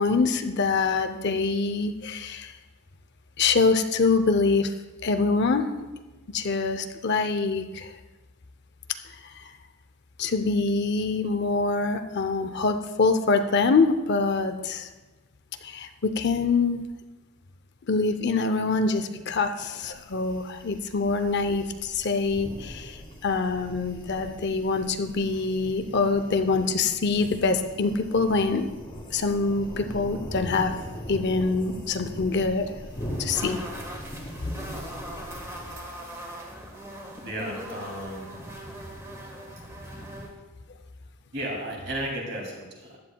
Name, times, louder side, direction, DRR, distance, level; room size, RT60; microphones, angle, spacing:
voice 1, 0.0-2.5 3.4-4.7 5.0-5.7 6.3-7.9 9.1-9.4 10.2-14.9 15.6-16.8 17.9-28.7 29.1-30.7 31.1-32.7 33.2-33.6, left 4 dB, 50° left, 8 dB, 0.6 m, -25 dB
sound 1, 19.9-35.7, equal, 20° left, 1.8 m, -41 dB
sound 2, 32.9-40.3, right 1 dB, 15° right, 1.4 m, -40 dB
voice 2, 35.8-36.6 37.2-38.3 41.3-43.0, right 1 dB, 50° right, -1 dB, 2.5 m, -35 dB
15.0 x 10.5 x 2.3 m, 1.2 s
head